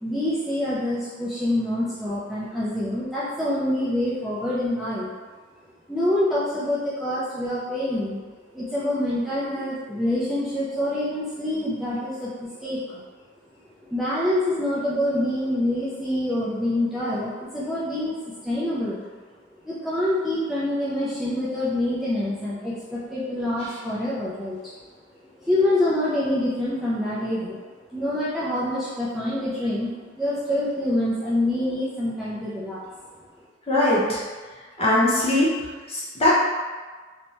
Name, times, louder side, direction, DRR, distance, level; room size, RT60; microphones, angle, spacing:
voice 1, 0.0-5.1 5.9-8.2 8.5-13.0 13.9-19.0 19.6-24.6 25.4-27.6 27.9-29.9 30.2-32.8, left 1 dB, ahead, -10 dB, 0.4 m, -26 dB
voice 2, 33.7-34.2 34.8-35.5 35.9-36.3, left 1 dB, 30° left, -7 dB, 0.8 m, -20 dB
2.7 x 2.2 x 3.0 m, 1.4 s
head